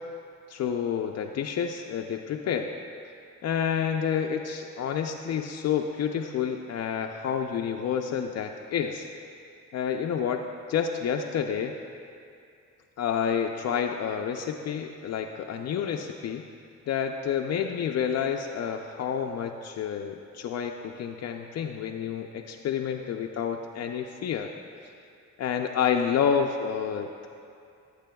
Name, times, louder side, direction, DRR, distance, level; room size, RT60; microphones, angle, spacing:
voice 1, 0.5-2.7 3.4-9.1 9.7-10.4 10.7-11.8 13.0-16.4 16.9-24.5 25.4-27.3, left 7 dB, 55° left, 3 dB, 0.5 m, -29 dB
15.0 x 8.4 x 2.3 m, 2.4 s
cardioid pair, 90°, 30 cm